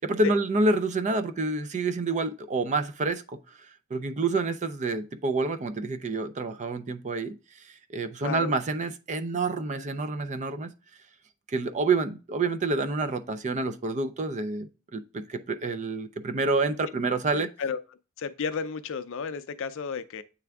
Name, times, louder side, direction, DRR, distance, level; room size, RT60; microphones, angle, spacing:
voice 1, 0.1-3.4 3.9-7.4 7.7-10.7 11.5-17.5, right 3 dB, 35° right, 0.4 m, -28 dB
voice 2, 8.2-8.5 17.3-17.8 18.2-20.2, left 5 dB, 60° left, 0.5 m, -32 dB
8.3 x 3.4 x 3.5 m
head